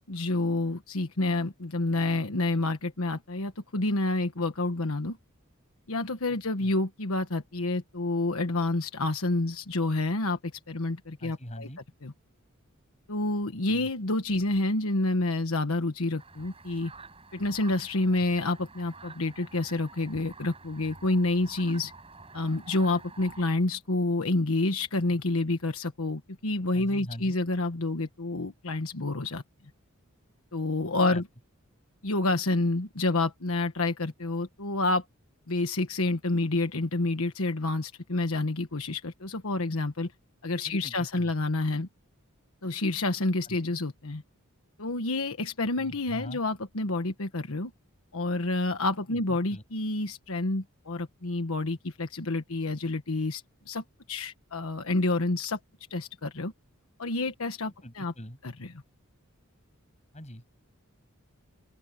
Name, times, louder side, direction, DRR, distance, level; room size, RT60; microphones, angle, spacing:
voice 1, 0.1-5.2 5.9-11.7 12.0-12.1 13.1-16.9 17.3-21.9 22.3-29.4 30.5-31.3 32.0-35.0 35.5-40.1 40.4-41.9 42.6-44.2 44.8-47.7 48.1-55.6 55.9-56.5 57.0-58.1 58.4-58.7, left 2 dB, 75° left, 1.3 m, -28 dB
voice 2, 11.2-11.8 13.7-13.9 18.1-18.2 26.7-27.4 30.9-31.2 40.7-41.3 43.5-43.6 45.8-46.4 49.1-49.6 57.8-58.4 60.1-60.5, equal, 30° left, 7.7 m, -43 dB
sound 1, 16.2-23.4, right 3 dB, 25° right, 7.0 m, -49 dB
open air
head